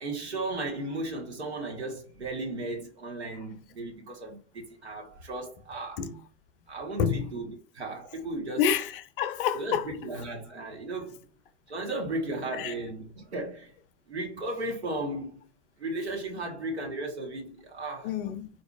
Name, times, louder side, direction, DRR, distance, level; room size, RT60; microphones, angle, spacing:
voice 1, 0.0-6.0 6.7-8.6 9.5-11.2 11.7-13.7 14.1-15.4 15.8-18.1, right 2 dB, 80° right, 1.2 m, -35 dB
voice 2, 8.6-9.9 12.6-12.7 18.0-18.5, left 8 dB, 55° left, 0.6 m, -28 dB
4.0 x 2.6 x 2.4 m
figure-of-eight pair, 80°, 32 cm